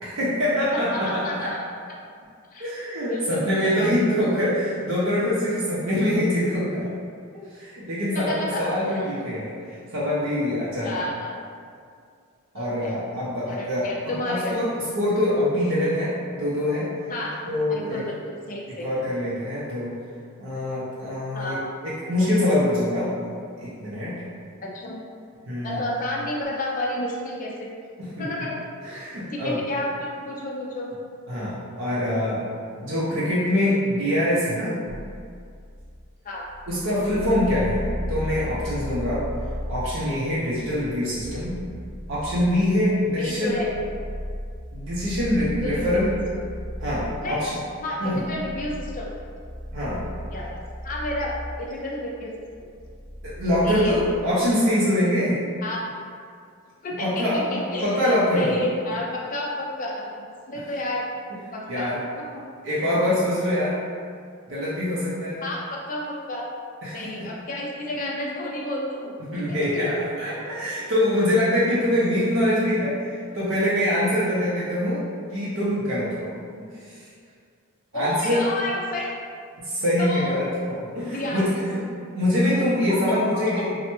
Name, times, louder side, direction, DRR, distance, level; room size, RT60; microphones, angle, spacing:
voice 1, 0.0-1.5 2.6-6.9 7.3-11.0 12.5-16.9 17.4-18.0 18.7-19.9 20.4-21.6 21.8-23.1 23.6-24.1 25.5-25.8 28.0-28.4 28.8-29.6 31.3-32.4 32.8-34.8 36.7-39.2 39.7-41.6 42.1-43.6 44.7-46.2 46.8-47.6 48.0-48.2 49.7-50.0 53.2-55.4 57.0-58.6 61.7-62.0 62.6-63.8 64.5-65.4 66.8-67.3 69.3-75.0 75.3-77.1 77.9-78.4 79.6-81.8 82.1-83.7, left 1 dB, 60° right, -8 dB, 0.5 m, -24 dB
voice 2, 0.7-1.6 2.5-3.9 8.1-9.1 10.8-11.3 12.5-13.0 13.5-14.5 17.1-17.4 17.7-18.9 21.3-21.7 24.6-25.0 25.6-27.8 28.2-28.6 29.3-30.9 36.2-36.4 43.2-43.7 45.4-46.1 47.2-47.5 47.8-49.0 50.3-50.6 50.8-52.7 53.6-54.1 55.6-55.8 56.8-61.1 61.5-62.4 65.4-66.5 66.9-69.8 70.6-70.7 77.9-79.1 80.0-80.4 81.0-81.5 82.9-83.6, left 1 dB, 35° left, -2 dB, 0.4 m, -31 dB
sound 1, 34.9-54.2, equal, ahead, 0.7 m, -36 dB
3.1 x 2.0 x 2.9 m, 2.2 s
head